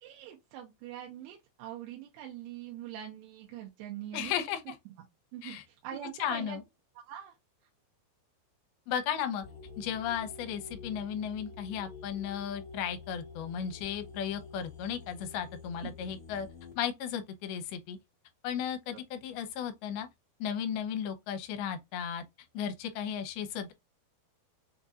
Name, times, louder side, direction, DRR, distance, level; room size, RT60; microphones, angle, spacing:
voice 1, 0.0-4.5 5.3-6.6 7.0-7.3 18.9-19.0, right 11 dB, 85° right, 2.7 m, -43 dB
voice 2, 4.1-4.7 5.4-5.6 6.2-6.6 8.9-9.4 9.8-16.5 16.8-18.0 18.4-20.1 20.4-22.2 22.5-23.7, left 8 dB, 80° left, 2.5 m, -35 dB
sound 1, 9.4-16.7, left 4 dB, 50° left, 1.9 m, -48 dB
6.3 x 2.7 x 2.3 m
omnidirectional pair, 4.6 m